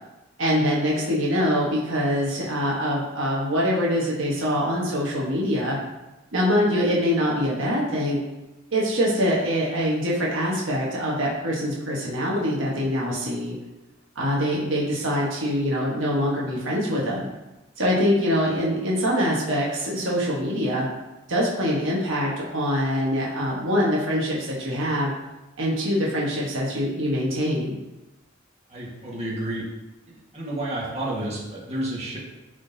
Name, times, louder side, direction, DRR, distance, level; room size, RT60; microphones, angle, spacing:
voice 1, 0.4-5.8 6.3-8.2 8.7-13.5 14.1-17.2 17.8-20.9 21.3-25.1 25.6-27.8, equal, 70° right, -4 dB, 1.3 m, -24 dB
voice 2, 28.7-29.6 30.1-32.2, right 1 dB, 35° right, -6 dB, 1.7 m, -30 dB
11.0 x 3.8 x 2.8 m, 1.0 s
head